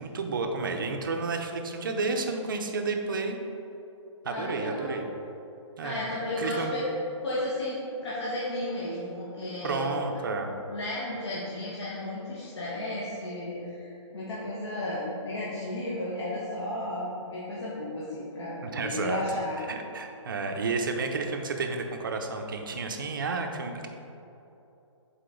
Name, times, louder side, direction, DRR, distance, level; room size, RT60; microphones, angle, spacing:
voice 1, 0.0-3.4 4.2-5.0 5.8-6.0 6.4-6.8 9.6-10.5 18.6-19.2 19.7-23.9, right 3 dB, 45° right, 3 dB, 0.6 m, -31 dB
voice 2, 4.3-4.9 5.8-6.8 7.2-9.9 10.2-10.4 10.7-19.6, left 1 dB, 60° left, -9 dB, 1.5 m, -33 dB
6.7 x 4.3 x 3.8 m, 2.9 s
hypercardioid pair, 170°, 16 cm